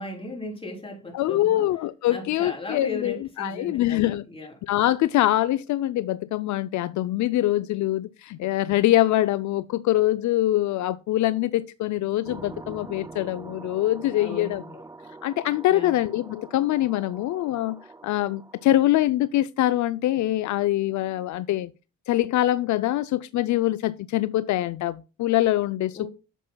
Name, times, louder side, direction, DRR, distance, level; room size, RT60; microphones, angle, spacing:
voice 1, 0.0-1.7 2.1-4.6 14.1-14.8 15.7-15.9 25.9-26.1, left 2 dB, 20° left, 3.7 m, -36 dB
voice 2, 1.1-4.2 4.7-14.6 15.2-17.8 18.0-21.7 22.1-26.1, left 14 dB, 70° left, 0.5 m, -24 dB
sound 1, 12.2-18.9, right 3 dB, 10° right, 0.6 m, -44 dB
9.9 x 7.3 x 2.2 m
cardioid pair, 90°, 30 cm